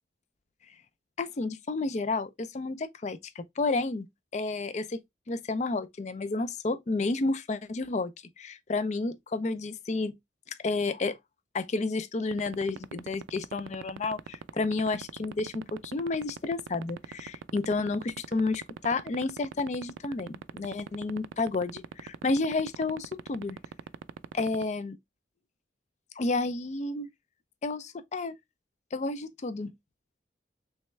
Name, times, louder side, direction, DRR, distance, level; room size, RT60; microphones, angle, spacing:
voice 1, 1.2-4.1 4.3-5.0 5.3-8.1 8.4-10.1 10.6-11.2 11.5-23.6 24.3-25.0 26.2-27.1 27.6-28.4 28.9-29.7, left 3 dB, 40° left, 0.4 m, -31 dB
sound 1, 12.3-24.6, right 7 dB, 90° right, 0.3 m, -38 dB
3.4 x 3.1 x 3.1 m
head